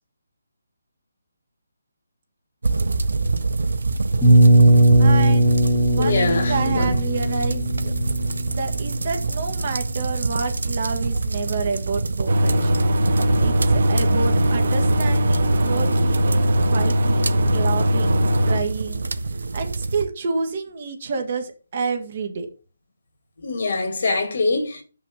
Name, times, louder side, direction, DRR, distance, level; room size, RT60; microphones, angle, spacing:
sound 1, 2.6-20.0, right 3 dB, 80° right, 0.9 m, -26 dB
sound 2, 4.2-10.0, right 1 dB, 10° left, 1.4 m, -18 dB
voice 1, 5.0-5.6 5.9-7.9 8.5-12.8 13.4-19.1 19.5-22.5, right 5 dB, 40° right, 1.7 m, -29 dB
voice 2, 6.0-6.9 23.4-24.8, left 3 dB, 50° left, 2.1 m, -23 dB
sound 3, 12.3-18.6, equal, 55° right, 1.6 m, -20 dB
5.9 x 5.7 x 7.0 m
hypercardioid pair, 170°, 0 cm